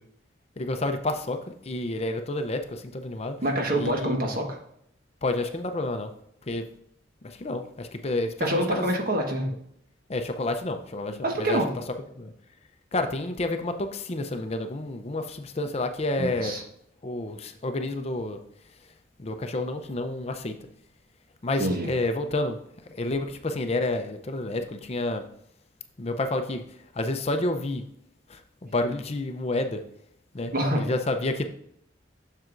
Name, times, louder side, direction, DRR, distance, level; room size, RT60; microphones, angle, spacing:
voice 1, 0.6-1.4 1.7-3.4 3.8-4.2 5.2-6.1 6.5-6.7 7.4-8.9 10.1-11.6 12.2-12.3 12.9-16.6 17.0-18.4 19.2-20.6 21.4-22.6 22.9-25.2 26.0-26.6 27.0-27.8 28.3-29.8 30.3-31.5, left 2 dB, 35° left, 7 dB, 0.6 m, -29 dB
voice 2, 3.4-4.6 8.4-9.5 11.2-11.7 16.2-16.6 21.6-21.9 30.5-30.9, right 1 dB, 50° right, 2 dB, 1.4 m, -26 dB
7.6 x 6.6 x 2.5 m, 0.72 s
head